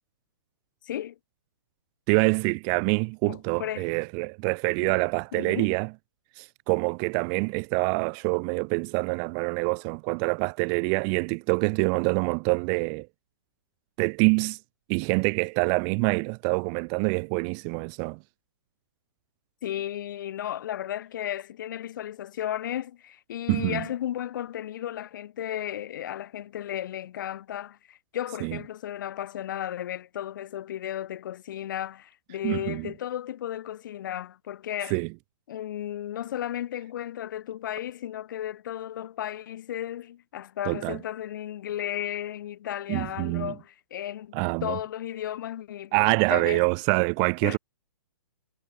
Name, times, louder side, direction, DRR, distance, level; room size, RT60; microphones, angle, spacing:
voice 1, 0.8-1.1 3.3-3.9 4.8-5.0 5.3-5.8 19.6-35.0 35.5-46.7 47.4-47.6, left 11 dB, 50° left, 1.2 m, -34 dB
voice 2, 2.1-5.9 6.4-13.1 14.0-14.6 14.9-18.2 23.5-23.8 28.4-28.6 32.4-32.9 34.9-35.1 40.7-41.0 42.9-43.5 44.3-44.8 45.9-47.6, right 40 dB or more, 25° right, 0.4 m, -26 dB
figure-of-eight pair, 120°, 14 cm